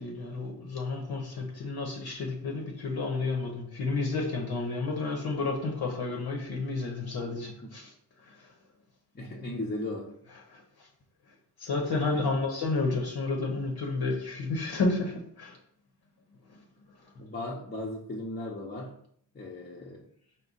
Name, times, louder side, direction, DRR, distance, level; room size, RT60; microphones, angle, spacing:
voice 1, 0.0-7.9 8.2-8.5 10.5-10.9 11.6-15.6 16.5-16.6, left 3 dB, 55° left, 0.8 m, -31 dB
voice 2, 9.1-10.1 12.1-12.4 17.2-18.9 19.3-20.0, left 1 dB, 25° left, 0.7 m, -36 dB
4.8 x 2.2 x 3.9 m
cardioid pair, 100°, 43 cm